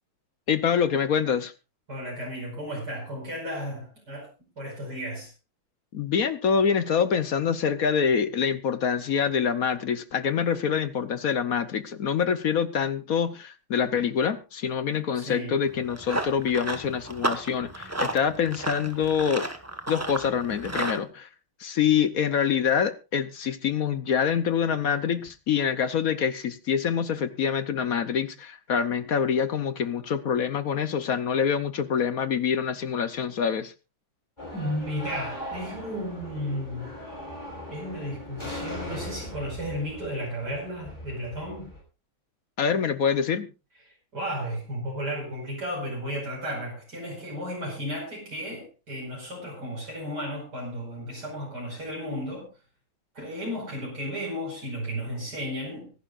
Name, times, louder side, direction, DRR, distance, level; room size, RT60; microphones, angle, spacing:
voice 1, 0.5-1.5 5.9-19.5 19.9-21.3 21.6-33.7 42.6-43.5, left 7 dB, 55° left, 1.1 m, -25 dB
voice 2, 1.9-4.3 4.6-5.3 15.1-15.6 34.5-36.9 37.7-41.7 44.1-52.5 53.1-55.9, equal, 50° right, 5.9 m, -34 dB
Run, 15.7-21.0, right 1 dB, 10° right, 1.0 m, -32 dB
sound 1, 34.4-41.8, left 1 dB, 20° left, 6.0 m, -39 dB
24.5 x 11.5 x 2.5 m
omnidirectional pair, 2.3 m